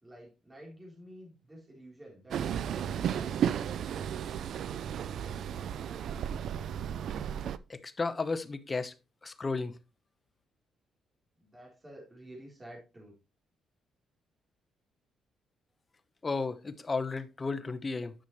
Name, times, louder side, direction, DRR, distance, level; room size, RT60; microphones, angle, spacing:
voice 1, 0.0-3.5 11.4-13.1, right 1 dB, 20° right, 3.5 m, -50 dB
Train, 2.3-7.6, right 9 dB, 70° right, 0.5 m, -34 dB
voice 2, 7.7-8.9 9.2-9.8 16.2-18.1, left 3 dB, 30° left, 0.9 m, -33 dB
10.0 x 6.1 x 3.1 m
cardioid pair, 90°, 0 cm